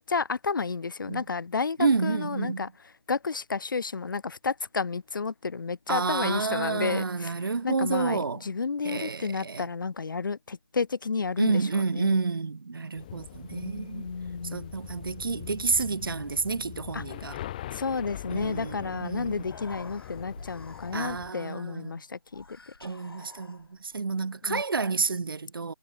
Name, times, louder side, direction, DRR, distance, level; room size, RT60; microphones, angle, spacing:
voice 1, 0.0-2.7 3.1-7.3 7.6-12.2 13.5-14.7 16.9-17.0 17.7-22.6 24.4-24.6, left 5 dB, 60° left, 0.5 m, -31 dB
voice 2, 1.8-2.7 5.9-8.4 8.8-9.7 11.4-14.1 14.4-17.4 18.3-19.5 20.9-22.0 22.8-25.7, right 4 dB, 70° right, 0.7 m, -29 dB
sound 1, 13.0-21.3, left 13 dB, 20° left, 1.4 m, -42 dB
Human voice, 19.4-21.4 22.3-24.0, left 3 dB, 85° left, 0.9 m, -49 dB
figure-of-eight pair, 155°, 12 cm